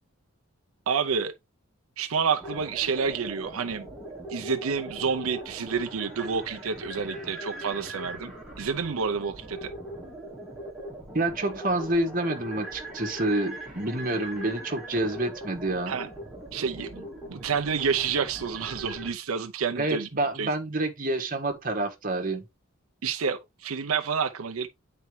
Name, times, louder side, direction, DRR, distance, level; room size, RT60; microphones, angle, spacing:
voice 1, 0.9-1.3 2.0-3.9 4.3-9.7 15.9-16.1 16.5-20.1 20.4-20.5 23.0-24.7, right 6 dB, 85° right, 0.6 m, -29 dB
sound 1, 2.4-19.1, right 1 dB, ahead, 2.1 m, -40 dB
voice 2, 11.1-16.0 19.8-22.4, right 2 dB, 40° right, 1.3 m, -28 dB
9.3 x 4.3 x 3.2 m
head